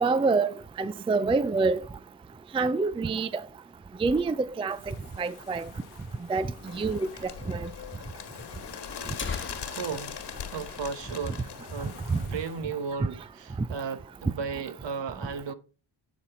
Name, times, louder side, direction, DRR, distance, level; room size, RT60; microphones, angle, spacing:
voice 1, 0.0-1.8 2.5-3.4 4.0-5.7 6.3-6.5 6.7-7.7 12.1-12.2, right 4 dB, 10° right, 0.4 m, -27 dB
sound 1, 3.0-4.8 5.1-5.2 5.4-5.5 6.2-6.3 7.2-7.3 7.7-7.8 8.5-8.6 9.0-11.6 11.9-12.0 12.4-12.7 13.1-13.7, left 4 dB, 25° left, 1.2 m, -42 dB
sound 2, 4.7-12.6, left 8 dB, 85° left, 1.2 m, -49 dB
Bird, 6.7-12.0, left 8 dB, 55° left, 1.5 m, -41 dB
voice 2, 9.7-15.5, right 5 dB, 60° right, 1.3 m, -35 dB
10.0 x 4.1 x 4.3 m
supercardioid pair, 55°, 49 cm